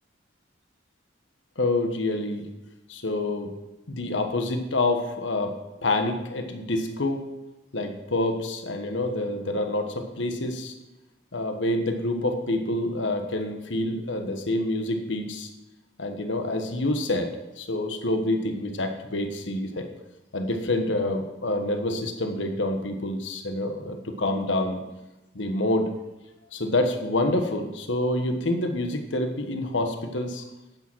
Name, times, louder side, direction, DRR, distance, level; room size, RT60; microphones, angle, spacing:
voice 1, 1.6-2.5 2.9-3.5 3.9-7.3 7.7-10.7 11.3-15.5 16.0-19.9 20.3-24.8 25.3-25.9 26.5-30.4, left 2 dB, 75° left, 5 dB, 1.3 m, -27 dB
10.5 x 8.8 x 6.2 m, 1.0 s
head